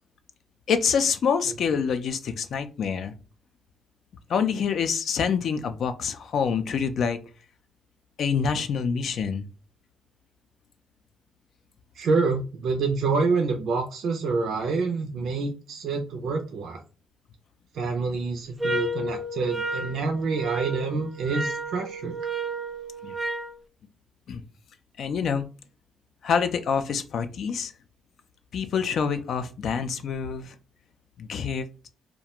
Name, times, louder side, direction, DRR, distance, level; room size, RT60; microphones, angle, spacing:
voice 1, 0.7-3.1 4.3-7.2 8.2-9.5 23.0-23.1 24.3-24.4 25.0-25.4 26.2-27.7 28.5-30.5 31.2-31.9, left 6 dB, 65° left, 9 dB, 0.4 m, -26 dB
voice 2, 11.9-16.8 17.7-22.2, right 4 dB, 70° right, 3 dB, 0.5 m, -27 dB
sound 1, 18.6-23.5, right 1 dB, 15° right, 0.4 m, -32 dB
2.4 x 2.1 x 2.8 m, 0.34 s
cardioid pair, 90°, 0 cm